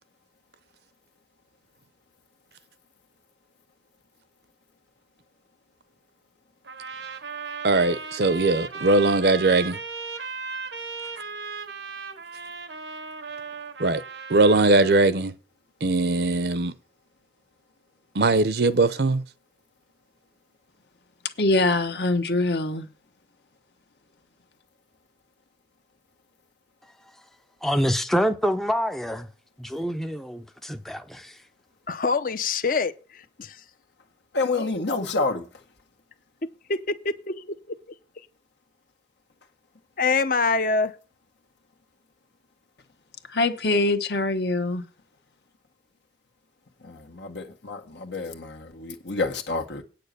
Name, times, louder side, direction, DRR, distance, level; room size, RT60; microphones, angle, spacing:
sound 1, 6.6-15.0, right 4 dB, 90° right, 1.1 m, -36 dB
voice 1, 7.6-9.8 13.8-14.0 14.3-15.3 15.8-16.7 18.1-19.2, right 2 dB, 65° right, 0.7 m, -20 dB
voice 2, 21.4-22.9 43.3-44.8, left 2 dB, 70° left, 1.2 m, -23 dB
voice 3, 27.6-29.3 29.6-31.4, equal, ahead, 0.5 m, -26 dB
voice 4, 31.9-33.6 34.6-34.7 36.4-37.8 38.2-38.3 40.0-41.0, left 4 dB, 50° left, 0.7 m, -26 dB
voice 5, 34.3-35.4 46.8-49.8, left 3 dB, 85° left, 1.6 m, -29 dB
9.2 x 6.7 x 6.8 m
head